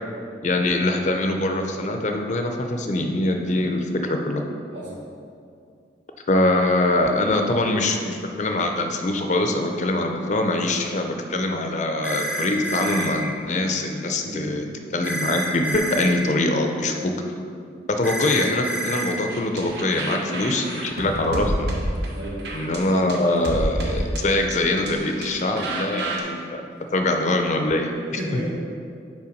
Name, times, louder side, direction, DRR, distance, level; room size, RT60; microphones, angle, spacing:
voice 1, 0.4-4.4 6.3-14.7 14.9-17.1 17.9-21.7 22.5-26.6 26.9-28.2, left 2 dB, 40° left, 4 dB, 0.5 m, -23 dB
sound 1, 12.0-13.1 15.0-16.1 18.0-19.1, right 2 dB, 10° right, 0.7 m, -28 dB
voice 2, 14.0-14.5 19.8-20.5 22.1-22.4 28.2-28.5, right 1 dB, 85° right, -6 dB, 1.5 m, -34 dB
sound 2, 19.3-26.2, right 1 dB, 65° right, 0.9 m, -30 dB
5.5 x 4.6 x 5.2 m, 2.4 s
head